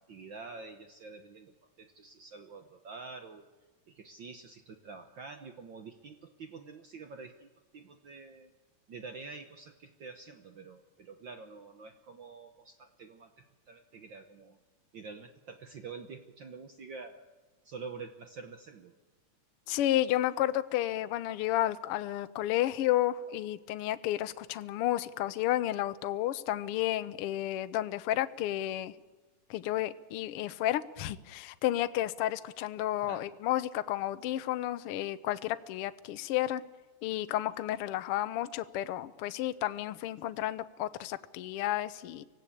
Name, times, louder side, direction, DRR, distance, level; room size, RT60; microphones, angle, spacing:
voice 1, 0.0-3.5 3.9-8.5 8.9-14.6 14.9-17.3 17.6-19.0 33.0-33.3, right 4 dB, 80° right, 7 dB, 1.0 m, -47 dB
voice 2, 19.7-28.9 29.5-36.6 37.0-42.2, left 13 dB, 90° left, 12 dB, 1.2 m, -32 dB
25.0 x 16.5 x 8.6 m, 1.3 s
omnidirectional pair, 3.7 m